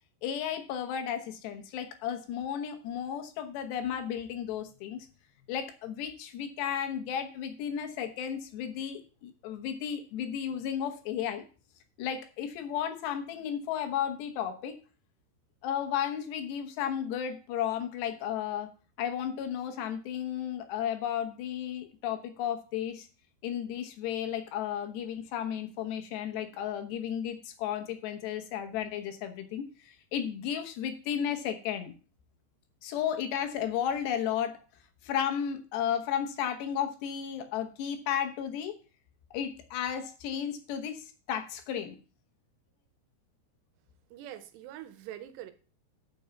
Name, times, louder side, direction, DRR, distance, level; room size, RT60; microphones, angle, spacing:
voice 1, 0.2-5.0 5.5-11.5 12.0-14.7 15.6-18.7 19.0-23.1 23.4-31.9 32.8-34.6 35.0-38.8 39.3-42.0, left 9 dB, 90° left, 6 dB, 3.3 m, -33 dB
voice 2, 44.1-45.5, right 12 dB, 90° right, 11 dB, 3.1 m, -44 dB
6.9 x 6.3 x 7.0 m, 0.36 s
omnidirectional pair, 4.7 m